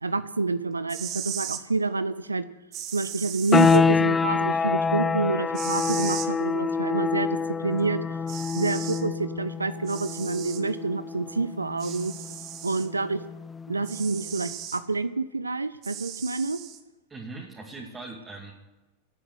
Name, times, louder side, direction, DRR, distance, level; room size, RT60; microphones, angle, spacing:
voice 1, 0.0-2.5 2.9-8.2 8.5-12.1 12.6-13.2 13.7-16.6, right 3 dB, 80° right, 14 dB, 0.7 m, -28 dB
sound 1, 0.7-1.6 2.7-3.8 5.5-6.3 7.8-7.9 8.3-9.0 9.9-10.6 11.8-12.9 13.8-14.8 15.8-16.8, right 11 dB, 35° right, 1.7 m, -37 dB
sound 2, 3.5-14.0, left 5 dB, 15° left, 0.4 m, -26 dB
voice 2, 17.1-18.5, right 3 dB, 15° right, -1 dB, 2.7 m, -40 dB
17.5 x 9.9 x 8.0 m, 1.1 s
figure-of-eight pair, 90°, 0 cm